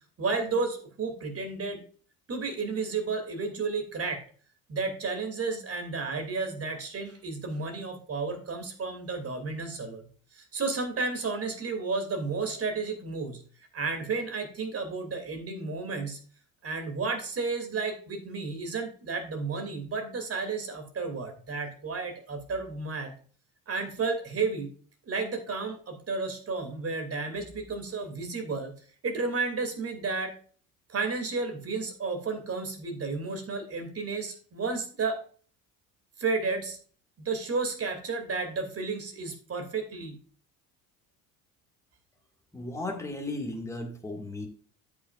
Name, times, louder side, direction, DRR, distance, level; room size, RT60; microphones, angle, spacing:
voice 1, 0.2-1.8 2.3-4.2 4.7-13.4 13.7-16.2 16.6-23.1 23.7-24.7 25.1-28.7 29.0-30.3 30.9-35.2 36.2-36.8 37.2-40.2, right 4 dB, 35° right, 5 dB, 2.6 m, -32 dB
voice 2, 42.5-44.5, left 2 dB, 5° left, 2 dB, 2.0 m, -35 dB
13.5 x 5.8 x 2.5 m, 0.43 s
hypercardioid pair, 65°, 43 cm